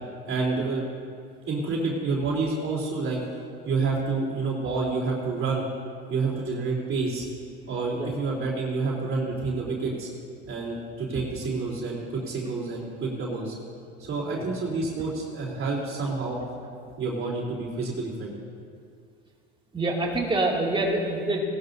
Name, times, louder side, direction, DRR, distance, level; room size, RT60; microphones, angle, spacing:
voice 1, 0.3-0.9 1.5-3.2 3.6-5.6 6.1-7.3 7.7-10.1 10.5-13.5 14.0-16.4 17.0-18.3, right 3 dB, 45° right, -5 dB, 3.6 m, -28 dB
voice 2, 19.7-21.4, right 2 dB, 15° right, -2 dB, 2.5 m, -26 dB
19.0 x 12.0 x 2.7 m, 2.4 s
supercardioid pair, 90°, 30 cm